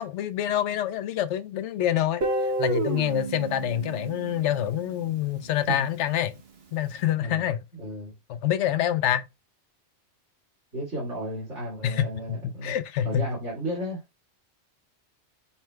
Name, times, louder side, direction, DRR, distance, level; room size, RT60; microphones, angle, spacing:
voice 1, 0.0-6.4 6.7-7.6 8.3-9.3 11.8-13.2, left 11 dB, 85° left, 0.9 m, -27 dB
Guitar, 2.2-5.2, right 2 dB, 60° right, 1.1 m, -30 dB
voice 2, 7.7-8.1 10.7-12.7 13.0-14.0, right 1 dB, 85° right, 2.4 m, -33 dB
5.6 x 2.1 x 4.5 m
omnidirectional pair, 1.2 m